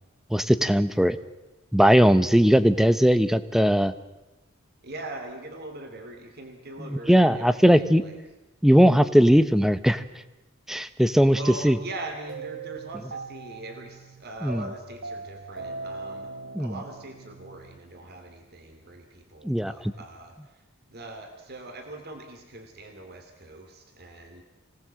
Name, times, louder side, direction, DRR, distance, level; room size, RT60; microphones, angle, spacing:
voice 1, 0.3-1.2 1.7-3.9 7.1-8.0 8.6-10.0 10.7-11.4 11.6-11.8 14.4-14.6 16.5-16.7 19.4-19.7, equal, ahead, 13 dB, 0.9 m, -19 dB
voice 2, 4.8-8.2 11.3-16.3 16.6-20.6 20.9-24.4, right 2 dB, 50° right, 5 dB, 2.8 m, -41 dB
sound 1, 12.3-18.5, right 3 dB, 75° right, 3.5 m, -40 dB
25.5 x 18.5 x 7.7 m, 1.0 s
head